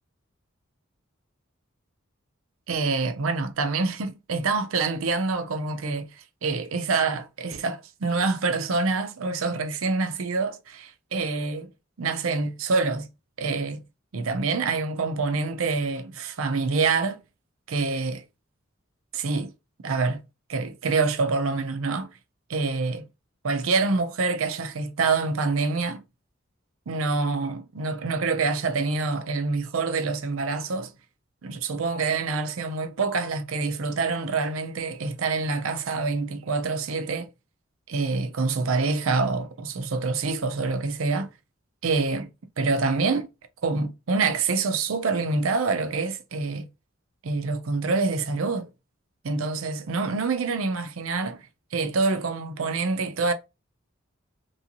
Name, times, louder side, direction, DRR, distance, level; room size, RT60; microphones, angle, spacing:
voice 1, 2.7-6.1 6.4-11.7 12.0-13.1 13.4-13.8 14.1-17.2 17.7-18.2 19.1-19.5 19.8-20.2 20.5-22.1 22.5-23.1 23.4-26.0 26.9-30.9 31.4-37.3 37.9-41.3 41.8-42.3 42.6-43.3 43.6-46.7 47.2-48.7 49.2-51.4 51.7-53.3, right 4 dB, 85° right, 0.6 m, -26 dB
3.1 x 2.6 x 2.8 m
head